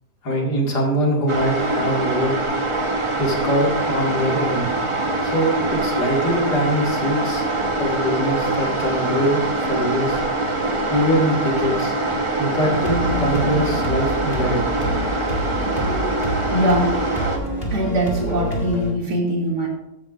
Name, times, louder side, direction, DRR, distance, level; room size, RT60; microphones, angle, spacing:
voice 1, 0.2-2.4 3.2-4.7 5.2-7.4 7.8-10.2 10.9-12.0 12.4-14.8, equal, 85° left, -1 dB, 2.7 m, -23 dB
sound 1, 1.3-17.4, right 2 dB, 20° right, 1.1 m, -23 dB
sound 2, 12.7-18.9, equal, 35° left, 2.2 m, -27 dB
voice 2, 16.5-16.9 17.7-19.7, equal, 80° right, -3 dB, 3.4 m, -21 dB
14.0 x 9.1 x 2.5 m, 0.88 s
omnidirectional pair, 1.7 m